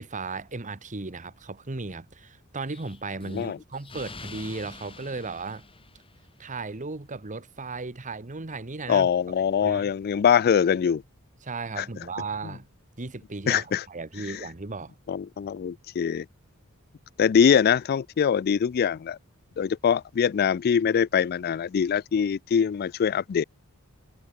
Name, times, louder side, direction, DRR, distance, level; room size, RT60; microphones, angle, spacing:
voice 1, 0.0-5.6 6.4-9.1 9.6-9.9 11.4-12.7 13.0-14.9, right 3 dB, 35° right, 1.2 m, -35 dB
Explosion, 2.7-6.5, left 3 dB, 25° left, 3.1 m, -46 dB
voice 2, 3.2-3.6 8.9-11.0 11.8-11.9 13.5-13.8 14.2-14.5 15.1-16.3 17.2-19.2 19.6-23.4, left 7 dB, 45° left, 0.3 m, -23 dB
head